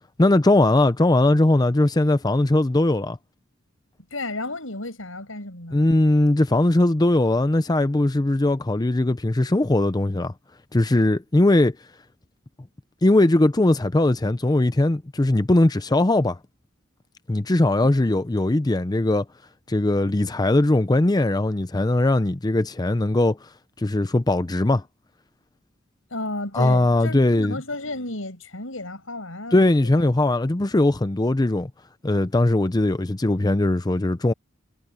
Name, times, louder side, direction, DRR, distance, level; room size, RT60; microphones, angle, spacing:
voice 1, 0.2-3.2 5.7-10.3 10.7-11.8 13.0-16.4 17.3-19.2 19.7-23.4 23.8-24.8 26.5-27.6 29.5-31.7 32.0-34.3, left 2 dB, 20° left, 0.6 m, -20 dB
voice 2, 4.1-5.9 26.1-30.1, left 2 dB, 90° left, 7.1 m, -33 dB
head